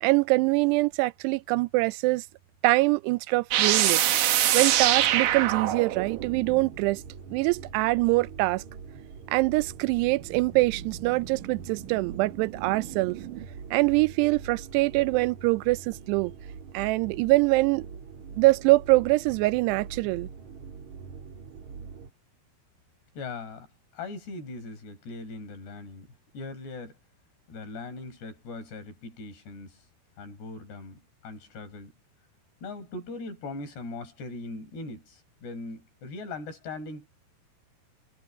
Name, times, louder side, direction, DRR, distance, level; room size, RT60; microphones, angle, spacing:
voice 1, 0.0-2.2 2.6-4.0 4.5-7.0 7.3-8.6 9.3-13.2 13.7-16.3 16.7-17.9 18.4-20.3, right 22 dB, 90° right, 2.7 m, -24 dB
sound 1, 3.5-6.9 9.6-13.4, right 11 dB, 65° right, 2.4 m, -26 dB
sound 2, 4.1-22.1, right 5 dB, 45° right, 4.0 m, -43 dB
voice 2, 23.1-23.7 23.9-27.0 27.5-29.8 30.2-31.9 32.6-37.1, left 3 dB, 80° left, 7.3 m, -40 dB
omnidirectional pair, 4.7 m